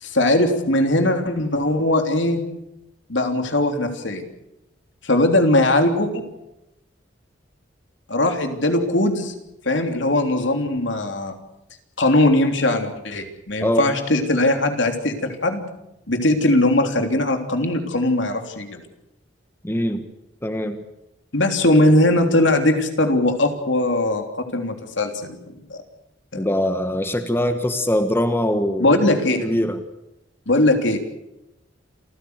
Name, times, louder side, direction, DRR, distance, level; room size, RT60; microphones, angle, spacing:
voice 1, 0.0-2.4 3.1-4.2 5.0-6.2 8.1-9.3 9.6-11.3 12.0-15.7 16.1-18.8 21.3-24.2 24.5-25.8 26.3-26.4 28.8-29.4 30.5-31.0, left 1 dB, 70° left, 5 dB, 3.3 m, -20 dB
voice 2, 19.6-20.0 20.4-20.8 26.4-29.0 29.4-29.8, equal, 10° left, 7 dB, 1.4 m, -22 dB
28.0 x 15.0 x 8.1 m, 0.89 s
head